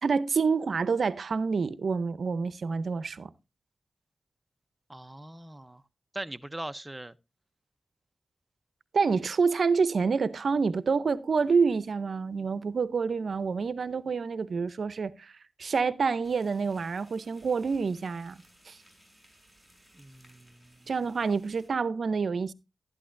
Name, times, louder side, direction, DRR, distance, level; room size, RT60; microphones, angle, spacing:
voice 1, 0.0-3.3 8.9-15.3 15.6-18.8 20.9-22.5, right 5 dB, 70° right, 0.6 m, -27 dB
voice 2, 4.9-5.8 6.1-7.1 19.9-20.9, right 1 dB, 15° right, 0.7 m, -41 dB
sound 1, 16.2-21.7, right 1 dB, 5° left, 6.1 m, -60 dB
12.5 x 11.0 x 2.6 m
cardioid pair, 65°, 0 cm